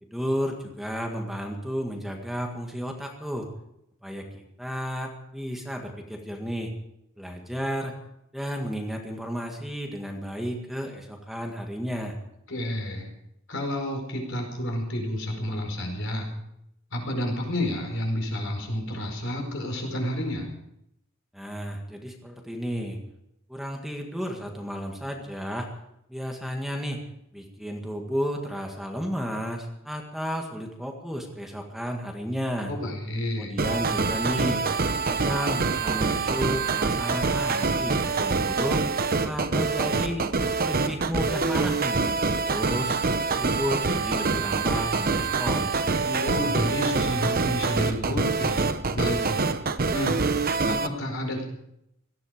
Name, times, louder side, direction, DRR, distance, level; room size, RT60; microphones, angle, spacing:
voice 1, 0.0-3.5 4.0-6.7 7.2-7.9 8.3-12.2 21.3-23.0 23.5-25.7 26.1-27.0 27.3-32.7 33.4-34.6 35.1-38.8 39.2-40.2 40.6-42.0 42.5-42.9 43.4-45.8, equal, ahead, 1 dB, 1.9 m, -32 dB
voice 2, 12.5-13.1 13.5-16.3 16.9-20.5 32.7-33.5 46.0-49.4 49.9-50.2 50.7-51.4, left 1 dB, 65° left, 2 dB, 4.9 m, -30 dB
sound 1, 33.6-50.9, right 4 dB, 45° right, 0.9 m, -25 dB
18.0 x 14.5 x 5.2 m, 0.80 s
head